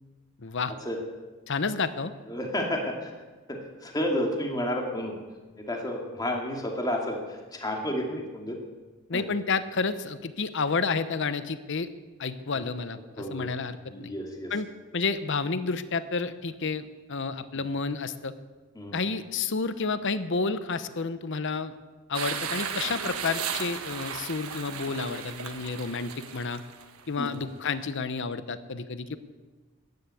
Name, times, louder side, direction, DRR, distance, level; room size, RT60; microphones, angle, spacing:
voice 1, 0.4-0.7 1.5-2.1 9.1-11.9 12.2-14.1 14.5-14.7 14.9-18.3 18.9-21.8 22.1-26.6 27.1-29.2, left 4 dB, 60° left, 13 dB, 0.8 m, -30 dB
voice 2, 2.3-3.1 3.5-5.2 5.7-8.6 9.1-9.2 13.2-13.5 13.8-14.5 18.8-19.0 27.2-27.3, left 1 dB, 20° left, 1 dB, 2.4 m, -31 dB
sound 1, 22.1-27.4, right 7 dB, 90° right, 1.5 m, -35 dB
15.0 x 10.5 x 8.4 m, 1.3 s
head